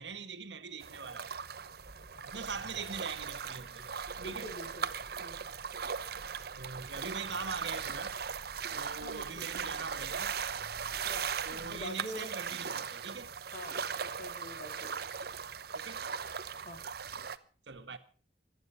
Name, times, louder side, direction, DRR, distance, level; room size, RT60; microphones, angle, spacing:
voice 1, 0.0-1.3 2.2-4.0 4.2-4.5 6.5-8.2 8.7-10.4 11.5-13.3 15.7-16.0 17.7-18.0, right 5 dB, 85° right, 1.8 m, -42 dB
sound 1, 0.8-17.4, right 6 dB, 60° right, 0.9 m, -39 dB
Church bell, 1.6-11.9, equal, 5° right, 3.8 m, -55 dB
voice 2, 4.2-4.9 5.2-5.5 9.0-9.5 11.0-12.3 13.5-15.6 16.6-16.8, left 1 dB, 50° left, 3.9 m, -46 dB
24.5 x 9.4 x 5.8 m
head